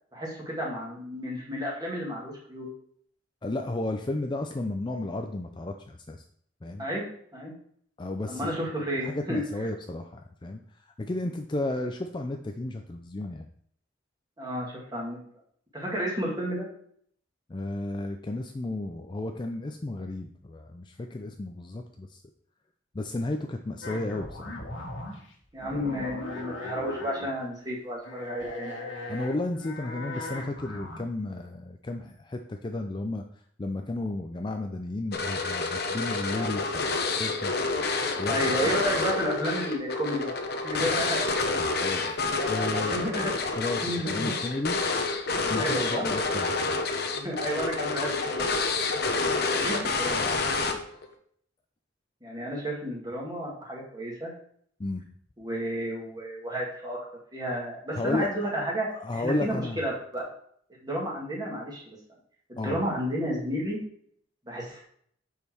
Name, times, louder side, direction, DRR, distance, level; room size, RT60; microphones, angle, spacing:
voice 1, 0.1-2.7 6.8-7.0 7.3-7.5 8.3-9.4 14.4-15.2 15.7-16.7 25.5-28.7 38.3-40.3 40.6-41.2 42.6-43.3 43.8-44.3 45.5-46.0 47.1-48.6 49.5-50.2 52.2-54.3 55.4-57.0 57.3-60.3 60.8-62.0 62.5-63.8 64.5-64.8, equal, 20° right, -3 dB, 2.1 m, -32 dB
voice 2, 3.4-6.2 6.6-6.9 8.0-8.5 9.0-10.6 11.0-13.5 17.5-22.2 22.9-24.6 29.1-33.2 33.6-37.5 38.2-38.7 41.8-43.1 43.6-44.8 45.5-46.8 54.8-55.0 57.9-58.5 58.9-59.8 62.6-62.8, left 2 dB, 25° left, 5 dB, 0.4 m, -33 dB
sound 1, 23.8-25.3 25.6-27.4 28.0-31.0, left 1 dB, 85° left, 1.8 m, -38 dB
sound 2, 35.1-51.1, left 3 dB, 55° left, 0.9 m, -28 dB
6.5 x 5.3 x 4.5 m, 0.63 s
head